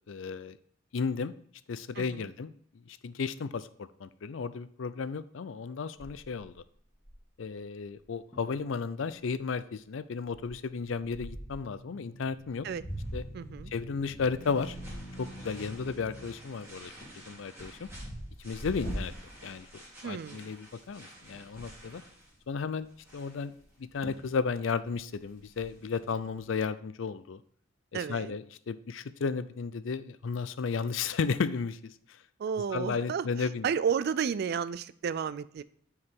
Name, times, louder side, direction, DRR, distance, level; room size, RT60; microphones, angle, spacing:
voice 1, 0.1-0.6 0.9-1.3 1.7-2.5 2.9-6.6 7.4-12.7 13.1-13.2 13.7-14.8 15.2-17.0 17.3-17.9 18.4-19.1 19.4-19.7 20.0-22.0 22.5-22.9 23.1-23.5 23.8-27.4 27.9-31.9 32.7-33.7, left 5 dB, 70° left, 14 dB, 0.5 m, -34 dB
voice 2, 2.0-2.3 12.6-12.8 13.3-13.7 20.0-20.5 27.9-28.4 32.4-35.6, right 7 dB, 55° right, 16 dB, 0.3 m, -32 dB
sound 1, 6.0-7.4 8.0-8.1 8.3-8.6 9.1-9.4 10.2-11.7 12.4-16.3 16.8-19.8 20.3-20.5 20.8-20.9 21.2-21.9 23.6-23.7 24.0-24.4 24.7-25.6, equal, 15° left, 2.2 m, -44 dB
sound 2, 10.5-16.2 18.8-19.5, equal, 40° left, 2.1 m, -44 dB
sound 3, 12.9-26.6, equal, 15° right, 2.5 m, -52 dB
9.5 x 4.7 x 3.6 m, 0.62 s
head